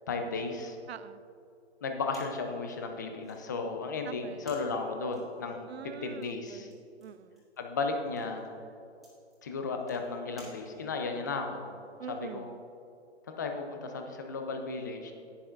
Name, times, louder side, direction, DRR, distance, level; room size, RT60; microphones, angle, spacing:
voice 1, 0.1-0.8 1.8-5.7 6.0-6.7 7.6-8.5 9.4-11.7 12.1-12.5 13.3-15.1, left 4 dB, 20° left, 4 dB, 0.4 m, -34 dB
voice 2, 0.9-1.2 4.0-4.5 5.7-7.4 12.0-12.6, right 8 dB, 65° right, 15 dB, 0.5 m, -45 dB
sound 1, 2.1-11.1, right 1 dB, ahead, 2.2 m, -59 dB
11.0 x 9.6 x 2.4 m, 2.6 s
figure-of-eight pair, 135°, 34 cm